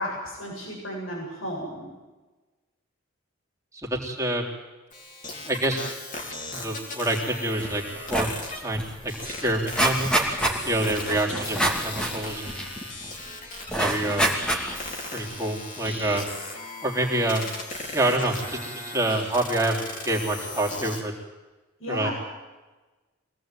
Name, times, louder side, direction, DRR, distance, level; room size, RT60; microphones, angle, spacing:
voice 1, 0.0-1.9 21.8-22.1, equal, 70° left, -1 dB, 7.9 m, -33 dB
voice 2, 3.7-4.4 5.5-5.8 6.5-7.8 8.1-9.1 9.4-10.2 10.6-12.7 13.8-14.4 15.1-16.3 16.8-17.5 17.9-21.1 21.9-22.1, right 1 dB, 15° right, -1 dB, 3.8 m, -27 dB
sound 1, 4.9-21.0, left 2 dB, 40° left, 4.5 m, -37 dB
sound 2, 7.6-7.8 8.1-8.4 8.7-8.8 9.1-13.1 13.7-14.9 15.4-15.5, right 1 dB, 5° left, 2.9 m, -26 dB
24.5 x 18.5 x 9.3 m, 1.2 s
head